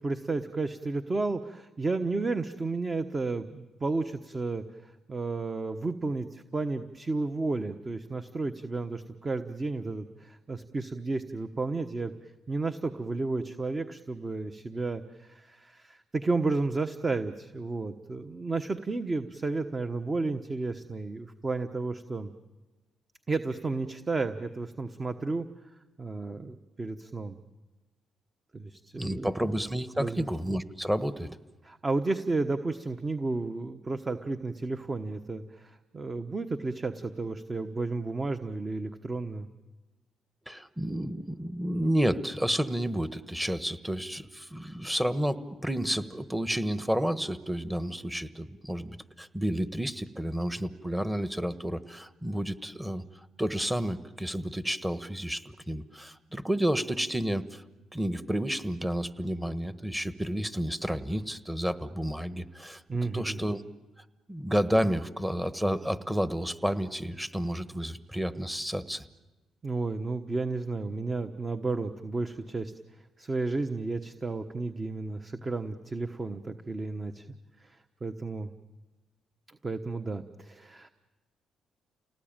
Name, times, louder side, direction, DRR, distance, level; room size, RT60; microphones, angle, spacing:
voice 1, 0.0-22.3 23.3-25.5 26.0-27.4 28.5-29.3 30.0-30.3 31.6-39.5 62.9-63.4 69.6-72.7 73.2-77.3 77.6-78.5 79.5-80.9, right 3 dB, 25° right, 8 dB, 1.1 m, -32 dB
voice 2, 29.0-31.4 40.5-53.0 53.4-57.6 57.9-62.8 63.1-63.6 64.0-69.0, equal, 5° right, 12 dB, 1.3 m, -31 dB
29.5 x 19.0 x 9.0 m, 1.2 s
cardioid pair, 90°, 0 cm